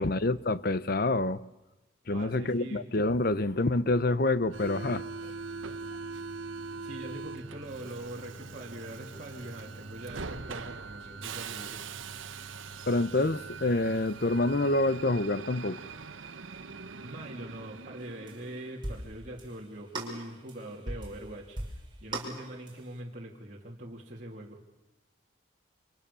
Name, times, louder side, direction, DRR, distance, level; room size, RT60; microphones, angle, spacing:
voice 1, 0.0-1.4 2.1-5.3 12.9-15.8, left 2 dB, 50° left, 16 dB, 0.8 m, -27 dB
voice 2, 2.1-2.9 6.8-11.9 16.9-21.7 22.0-24.6, right 1 dB, 40° right, -3 dB, 3.1 m, -43 dB
Subway metro underground, 4.5-18.8, right 4 dB, 85° right, 1.1 m, -42 dB
sound 1, 18.3-18.5 18.8-19.1 19.4-19.6 19.9-21.3 21.6-22.9, right 1 dB, 25° right, 5.8 m, -38 dB
29.5 x 26.5 x 7.0 m, 1.0 s
head